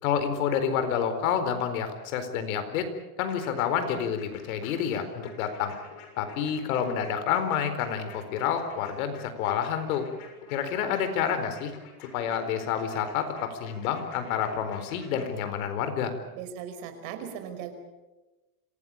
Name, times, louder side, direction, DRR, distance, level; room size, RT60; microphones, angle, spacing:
voice 1, 0.0-2.9 3.2-5.7 6.2-10.1 10.5-11.7 12.0-16.1, left 8 dB, 70° left, 9 dB, 4.4 m, -29 dB
sound 1, 3.3-15.2, left 6 dB, 50° left, 7.0 m, -49 dB
voice 2, 16.3-17.7, right 8 dB, 55° right, 7 dB, 5.3 m, -38 dB
26.5 x 18.0 x 8.8 m, 1.1 s
supercardioid pair, 140°, 44 cm